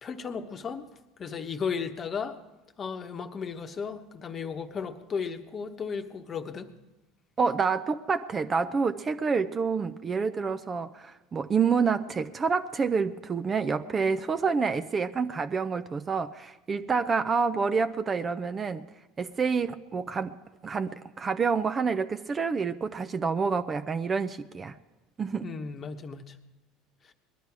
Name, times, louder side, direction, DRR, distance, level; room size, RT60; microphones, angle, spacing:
voice 1, 0.0-0.9 1.2-2.4 2.8-6.7 25.4-26.4 27.0-27.1, left 6 dB, 35° left, 6 dB, 1.1 m, -35 dB
voice 2, 7.4-18.9 19.2-20.4 20.6-24.7 25.2-25.5, right 5 dB, 30° right, 11 dB, 0.6 m, -28 dB
20.5 x 11.5 x 4.8 m, 1.1 s
supercardioid pair, 105°, 0 cm